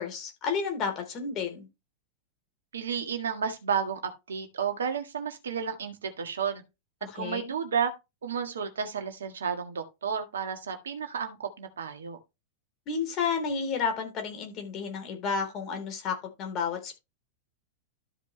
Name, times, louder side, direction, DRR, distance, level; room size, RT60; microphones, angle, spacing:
voice 1, 0.0-1.7 7.0-7.5 12.9-16.9, left 5 dB, 35° left, 3.5 m, -31 dB
voice 2, 2.7-4.0 4.3-6.6 7.1-7.9 8.2-12.2, right 7 dB, 70° right, 1.7 m, -32 dB
13.0 x 5.1 x 3.2 m
figure-of-eight pair, 95°, 0 cm